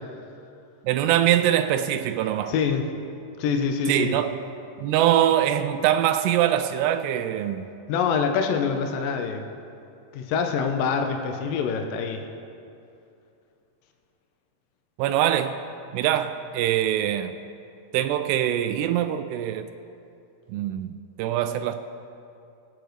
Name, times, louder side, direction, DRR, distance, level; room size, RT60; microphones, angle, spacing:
voice 1, 0.9-2.5 3.9-4.3 4.8-7.7 15.0-15.5 15.9-17.3 17.9-19.7 20.5-20.9 21.2-21.7, right 11 dB, 85° right, 2.4 m, -23 dB
voice 2, 2.5-2.9 3.4-4.2 7.9-9.4 10.1-12.2, left 6 dB, 85° left, 1.9 m, -25 dB
21.5 x 9.1 x 3.2 m
omnidirectional pair, 5.2 m